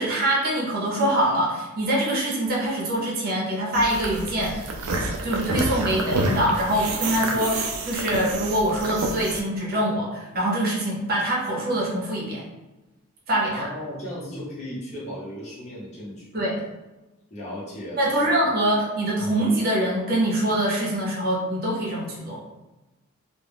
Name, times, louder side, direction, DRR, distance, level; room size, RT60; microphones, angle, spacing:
voice 1, 0.0-4.6 5.2-12.4 13.3-13.7 16.3-16.6 18.0-22.4, right 1 dB, 40° right, -4 dB, 0.7 m, -24 dB
sound 1, 3.7-9.4, right 2 dB, 70° right, 0.4 m, -28 dB
voice 2, 13.5-16.3 17.3-18.3 18.8-18.9, equal, 30° left, -8 dB, 0.9 m, -36 dB
2.3 x 2.1 x 3.4 m, 1.1 s
head